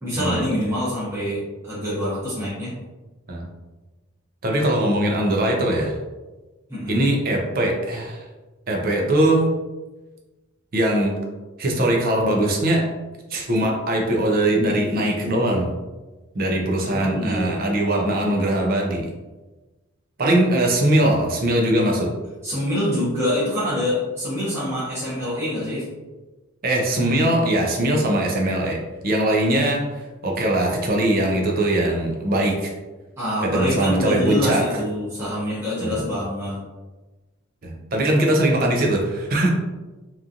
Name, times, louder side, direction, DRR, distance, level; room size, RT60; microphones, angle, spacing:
voice 1, 0.0-2.7 6.7-7.0 16.9-17.5 22.4-25.8 33.2-36.6, equal, 10° right, -11 dB, 0.9 m, -25 dB
voice 2, 4.4-5.9 6.9-8.2 8.7-9.5 10.7-11.1 11.6-12.8 13.3-15.7 16.3-19.1 20.2-22.1 26.6-28.8 29.0-32.7 33.4-34.8 35.8-36.0 37.6-39.5, right 1 dB, 45° right, 0 dB, 0.5 m, -21 dB
2.9 x 2.4 x 2.5 m, 1.2 s
head